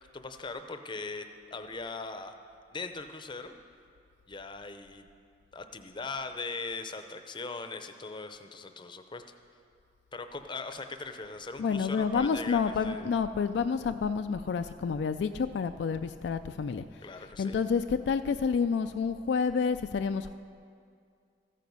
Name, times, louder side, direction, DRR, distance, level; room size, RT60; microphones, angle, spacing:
voice 1, 0.1-2.3 2.7-3.5 4.3-5.1 5.5-9.2 10.1-13.1 17.0-17.6, left 3 dB, 25° left, 8 dB, 0.6 m, -40 dB
voice 2, 11.6-16.8 17.2-20.3, left 5 dB, 65° left, 9 dB, 0.3 m, -29 dB
14.5 x 9.2 x 5.4 m, 2.3 s
head